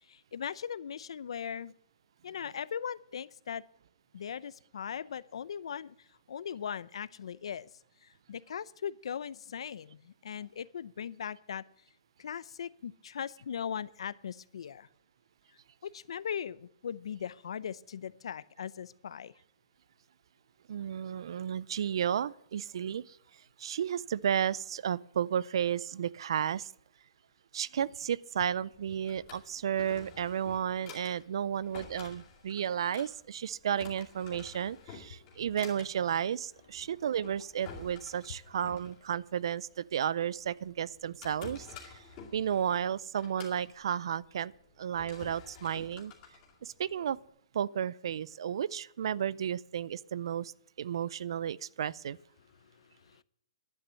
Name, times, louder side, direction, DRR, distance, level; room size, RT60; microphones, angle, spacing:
voice 1, 0.1-1.7 2.2-3.6 4.1-6.0 6.3-7.7 8.0-11.6 12.2-14.9 15.8-19.3 52.8-53.2, left 8 dB, 65° left, 0.6 m, -39 dB
voice 2, 20.7-23.2 23.6-26.7 27.5-42.0 42.3-44.5 44.8-46.1 46.6-47.2 47.5-50.5 50.8-52.2, right 9 dB, 55° right, 0.4 m, -33 dB
Drawer open or close, 28.7-47.3, left 5 dB, 20° left, 2.5 m, -51 dB
11.5 x 9.0 x 7.6 m
hypercardioid pair, 170°, 3 cm